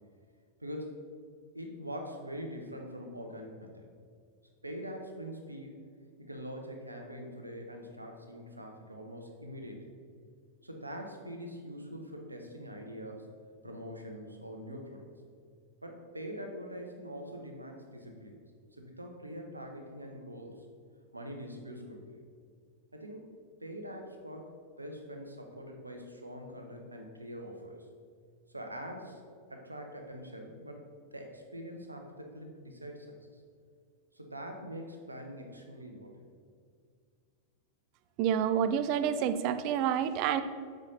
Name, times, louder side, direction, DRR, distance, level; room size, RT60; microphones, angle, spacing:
voice 1, 0.6-0.9 1.5-3.9 4.6-5.8 6.2-9.9 10.6-13.3 13.6-15.0 15.8-18.4 18.7-20.7 21.1-22.2 22.9-24.5 24.8-27.9 28.5-29.2 29.5-30.8 31.1-33.4 34.1-36.2, equal, 85° right, 3 dB, 0.9 m, -44 dB
voice 2, 38.2-40.4, right 9 dB, 45° right, 11 dB, 0.4 m, -28 dB
7.3 x 5.2 x 4.0 m, 2.1 s
figure-of-eight pair, 90°, 0 cm